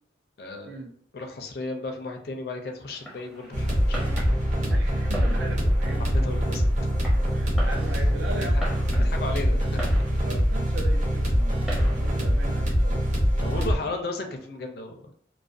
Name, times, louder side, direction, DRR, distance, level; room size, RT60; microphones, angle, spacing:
voice 1, 0.4-0.8 1.1-4.2 6.0-6.9 8.3-8.6 8.9-10.2 13.4-15.1, left 2 dB, 55° left, 4 dB, 0.4 m, -35 dB
Fireworks, 2.9-12.9, right 1 dB, 5° right, 0.5 m, -42 dB
sound 1, 3.5-13.7, equal, 40° right, 0.7 m, -23 dB
voice 2, 4.7-6.2 7.2-9.1 9.5-9.6 10.2-13.1 13.6-14.0, right 2 dB, 85° right, 3 dB, 0.5 m, -39 dB
2.3 x 2.1 x 2.5 m, 0.64 s
head